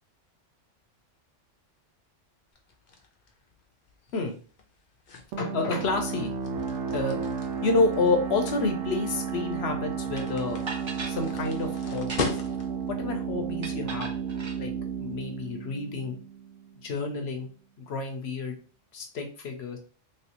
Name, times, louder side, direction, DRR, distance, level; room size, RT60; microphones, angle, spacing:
sound 1, 2.5-12.9, left 4 dB, 50° left, 0.7 m, -40 dB
sound 2, 5.3-16.7, right 6 dB, 75° right, 0.9 m, -33 dB
voice 1, 5.4-6.3 6.9-7.2 7.6-10.6 11.1-12.4 12.9-14.1 14.6-14.7 15.0-16.2 16.8-17.5 17.8-18.6 18.9-19.8, left 3 dB, 65° left, 4 dB, 0.9 m, -29 dB
sound 3, 10.2-10.3 10.7-11.2 12.0-12.5 13.6-14.6, right 3 dB, 40° right, 0.4 m, -38 dB
3.2 x 3.1 x 2.9 m, 0.39 s
omnidirectional pair, 1.2 m